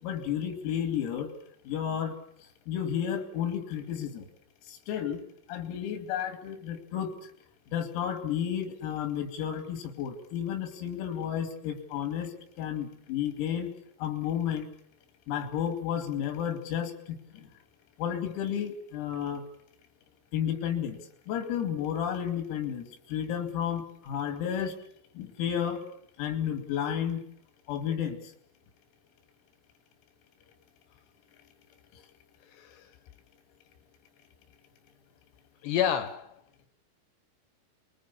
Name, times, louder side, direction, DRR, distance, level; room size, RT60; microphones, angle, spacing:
voice 1, 0.0-1.3 1.7-2.2 2.7-4.3 4.7-7.1 7.7-13.7 14.0-14.7 15.3-17.5 18.0-19.4 20.3-21.0 21.3-24.7 25.2-25.8 26.2-27.2 27.7-28.2 31.9-32.0, left 9 dB, 90° left, 8 dB, 5.3 m, -32 dB
voice 2, 32.5-32.9 35.6-36.4, left 9 dB, 70° left, 11 dB, 2.8 m, -29 dB
25.5 x 22.0 x 7.3 m, 0.67 s
omnidirectional pair, 6.0 m